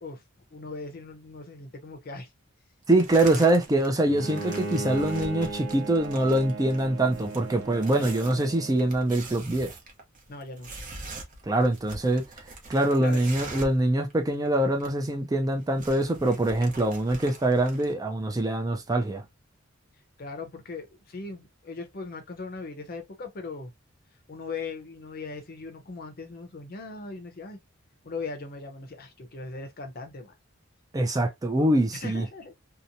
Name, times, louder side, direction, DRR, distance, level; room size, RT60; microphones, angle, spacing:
voice 1, 0.5-2.3 3.2-3.5 7.9-8.2 10.3-10.7 13.0-13.6 20.2-23.7 24.3-27.6 28.0-30.4 31.9-32.5, left 3 dB, 50° left, 0.7 m, -39 dB
voice 2, 2.9-9.7 11.5-12.2 12.7-19.2 30.9-32.2, right 1 dB, 20° right, 0.4 m, -24 dB
sound 1, 2.9-3.9 4.2-13.8 14.1-14.2 14.4-15.1 15.4-17.9, right 3 dB, 40° right, 0.8 m, -43 dB
Bowed string instrument, 4.1-9.3, right 2 dB, 75° right, 0.7 m, -37 dB
2.8 x 2.1 x 2.5 m
head